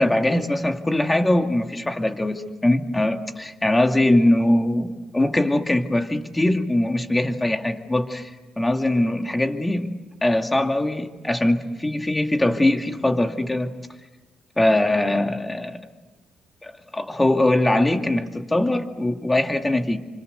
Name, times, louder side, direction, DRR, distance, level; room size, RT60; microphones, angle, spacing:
voice 1, 0.0-8.3 8.6-9.9 10.2-13.7 14.6-15.8 16.6-20.0, left 1 dB, 15° left, 5 dB, 2.4 m, -21 dB
28.5 x 25.5 x 8.1 m, 1.2 s
cardioid pair, 90°, 0 cm